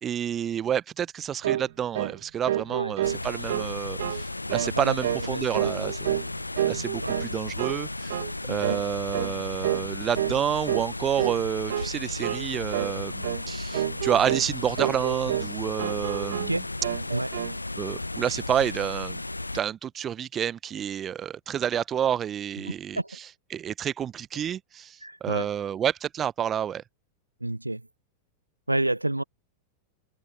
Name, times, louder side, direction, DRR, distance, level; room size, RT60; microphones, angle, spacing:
voice 1, 0.0-6.1 6.7-8.2 8.5-16.6 17.8-19.2 19.5-26.8, right 9 dB, 25° right, 1.0 m, -29 dB
sound 1, 1.4-1.7 1.9-2.2 2.5-3.7 4.0-4.2 4.5-4.8 5.0-5.3 5.5-6.3 6.6-7.3 7.6-7.8 8.1-8.3 8.6-8.8 9.1-9.3 9.6-9.9 10.2-10.4 10.7-10.9 11.2-11.4 11.7-11.9 12.2-12.5 12.7-12.9 13.2-13.4 13.7-14.5 14.8-15.5 15.8-16.5 16.8-17.6, right 13 dB, 60° right, 2.1 m, -29 dB
sound 2, 3.0-19.6, left 2 dB, 85° left, 1.1 m, -34 dB
voice 2, 4.6-5.0 5.2-5.9 7.0-7.2 8.5-8.8 16.5-16.7 17.1-17.3 22.6-23.1 25.0-25.5 27.4-27.8 28.7-29.2, right 1 dB, 85° right, 1.1 m, -30 dB
figure-of-eight pair, 90°, 0 cm